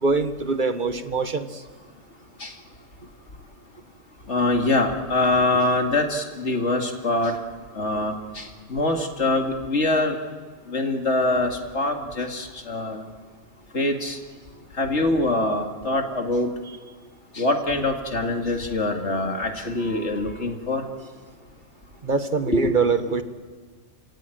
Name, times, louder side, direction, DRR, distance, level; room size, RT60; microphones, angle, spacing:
voice 1, 0.0-1.6 19.9-20.1 22.0-23.2, right 4 dB, 35° right, 10 dB, 1.3 m, -24 dB
voice 2, 4.3-7.4 7.8-10.2 10.7-13.1 13.7-14.2 14.8-16.5 17.3-20.8 22.5-22.7 23.1-23.2, left 2 dB, 55° left, 3 dB, 2.4 m, -24 dB
29.0 x 17.0 x 9.0 m, 1.5 s
omnidirectional pair, 1.5 m